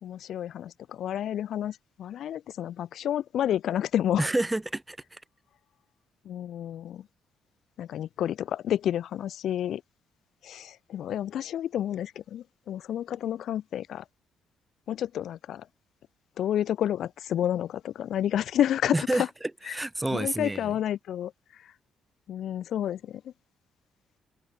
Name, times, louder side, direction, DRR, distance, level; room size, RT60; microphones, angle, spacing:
voice 1, 0.0-4.2 6.2-7.1 7.8-9.8 10.4-14.0 14.9-15.7 16.4-19.3 19.7-19.8 20.1-21.7 22.3-23.3, left 10 dB, 70° left, 0.5 m, -30 dB
voice 2, 4.2-5.2 18.9-19.2 19.7-20.6, right 2 dB, 10° right, 0.9 m, -28 dB
cardioid pair, 90°, 0 cm